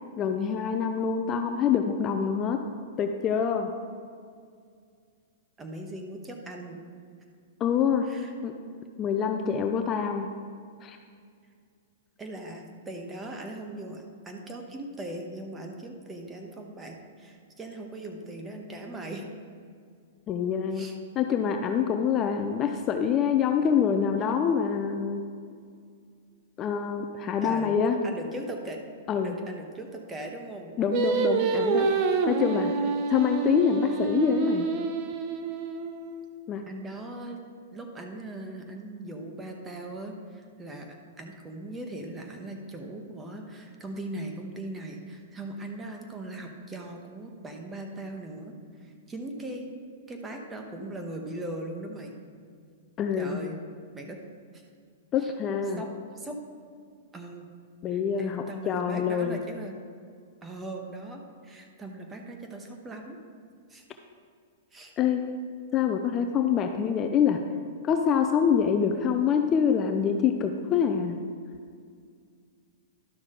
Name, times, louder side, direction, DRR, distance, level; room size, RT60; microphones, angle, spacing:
voice 1, 0.2-2.6 3.0-3.7 7.6-8.1 8.4-8.5 9.0-10.3 10.8-11.0 20.3-20.9 21.2-25.2 26.6-28.0 29.1-29.3 30.8-31.9 32.3-32.7 33.1-34.7 36.5-36.6 53.0-53.4 55.1-55.8 57.8-59.4 65.0-65.3 65.7-67.4 67.8-71.2, left 7 dB, 25° left, 5 dB, 0.5 m, -25 dB
voice 2, 5.6-6.8 8.0-8.3 12.2-19.2 20.7-21.0 27.4-27.7 28.0-28.8 29.2-30.8 36.7-37.4 37.7-49.7 50.1-52.2 53.1-53.6 53.9-54.2 54.5-54.6 55.2-55.3 55.7-55.9 56.1-56.4 57.1-57.5 57.9-59.8 60.4-63.2 63.7-63.8 64.7-64.9, right 1 dB, 15° right, 3 dB, 1.1 m, -39 dB
Singing, 30.9-36.2, right 4 dB, 40° right, 0.8 m, -27 dB
12.0 x 6.1 x 3.8 m, 2.2 s
hypercardioid pair, 140°, 0 cm